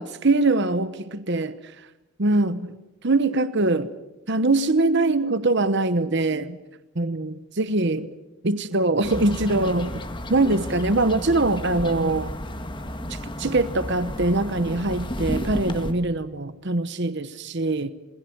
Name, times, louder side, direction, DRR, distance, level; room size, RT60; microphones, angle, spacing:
voice 1, 0.0-1.7 2.2-2.8 3.0-3.9 4.3-6.6 6.9-8.1 8.4-10.0 10.3-12.3 13.4-17.9, right 2 dB, 55° right, 1.0 m, -23 dB
sound 1, 9.0-15.9, left 1 dB, 20° left, 1.9 m, -32 dB
27.5 x 21.5 x 8.0 m
head